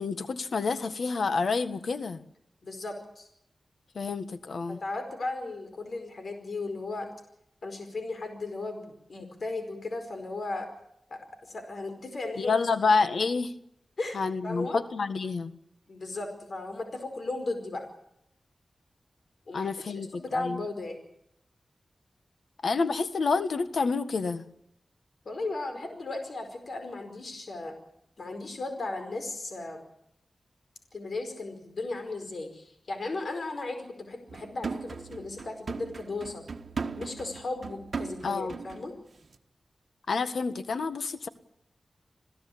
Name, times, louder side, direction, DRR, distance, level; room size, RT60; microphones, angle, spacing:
voice 1, 0.0-2.2 3.9-4.8 12.4-13.5 14.1-15.5 19.5-20.6 22.6-24.4 38.2-38.5 40.1-41.3, left 4 dB, 85° left, 10 dB, 1.6 m, -28 dB
voice 2, 2.6-3.3 4.7-7.1 7.6-10.7 11.1-11.2 11.5-12.7 14.0-14.2 14.4-14.8 15.9-17.8 19.5-21.0 25.2-27.7 28.2-29.8 30.9-36.4 37.0-38.9, left 2 dB, 60° left, 6 dB, 4.9 m, -36 dB
sound 1, 34.3-38.9 39.2-39.4, right 4 dB, 60° right, 1.5 m, -38 dB
27.5 x 16.5 x 8.6 m, 0.77 s
wide cardioid pair, 90°, 0 cm